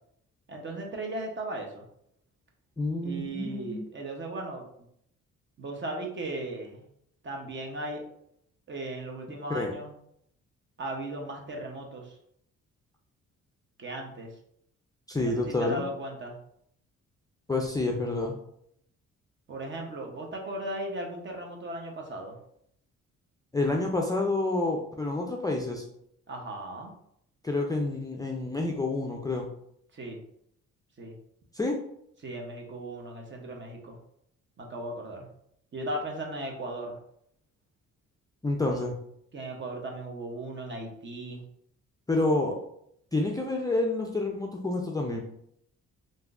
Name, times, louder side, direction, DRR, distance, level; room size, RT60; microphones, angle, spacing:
voice 1, 0.5-1.8 3.0-4.7 5.6-6.8 7.2-8.0 8.7-9.9 10.8-12.2 13.8-14.3 15.2-16.4 19.5-22.4 26.3-26.9 29.9-30.2 31.0-31.2 32.2-34.0 34.6-35.3 35.7-37.0 38.7-38.8 39.3-41.4, right 1 dB, 40° right, 1 dB, 0.8 m, -37 dB
voice 2, 2.8-3.9 9.5-9.7 15.1-15.8 17.5-18.3 23.5-25.8 27.4-29.5 31.5-31.8 38.4-39.0 42.1-42.5 43.1-45.2, left 2 dB, 10° left, 0 dB, 0.4 m, -28 dB
3.5 x 2.6 x 2.4 m, 0.71 s
cardioid pair, 90°, 30 cm